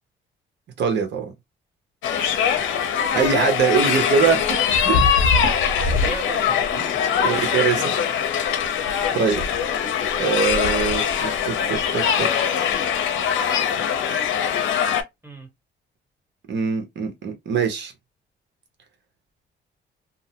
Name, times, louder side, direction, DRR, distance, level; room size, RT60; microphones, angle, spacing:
voice 1, 0.8-1.3 2.2-2.4 3.1-5.0 6.7-6.8 7.2-7.9 9.1-9.4 10.2-12.3 12.5-12.8 16.5-17.9, right 6 dB, 65° right, 0.9 m, -23 dB
sound 1, 2.0-15.0, left 7 dB, 75° left, 0.6 m, -22 dB
voice 2, 5.9-8.1 9.1-9.5 15.2-15.5, right 2 dB, 10° right, 1.2 m, -37 dB
2.6 x 2.0 x 2.8 m
cardioid pair, 90°, 20 cm